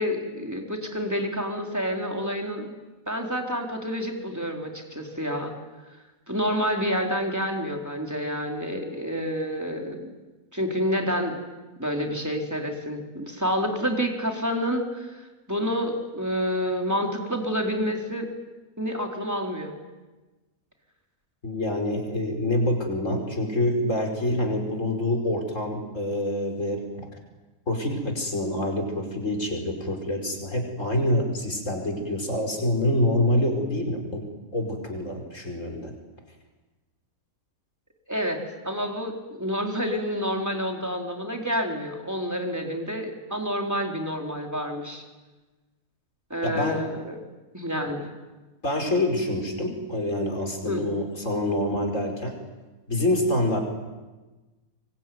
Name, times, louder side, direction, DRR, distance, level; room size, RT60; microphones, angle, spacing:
voice 1, 0.0-2.7 3.1-5.5 6.3-10.1 10.5-11.4 11.8-18.3 18.8-19.7 38.1-38.4 38.6-45.0 46.3-47.2 47.5-48.1 50.7-50.8, equal, 10° right, 1 dB, 4.0 m, -28 dB
voice 2, 21.4-26.9 27.7-35.9 46.4-46.8 48.6-52.3 52.9-53.6, left 1 dB, 55° left, 3 dB, 5.4 m, -26 dB
25.0 x 24.0 x 9.4 m, 1.2 s
omnidirectional pair, 1.6 m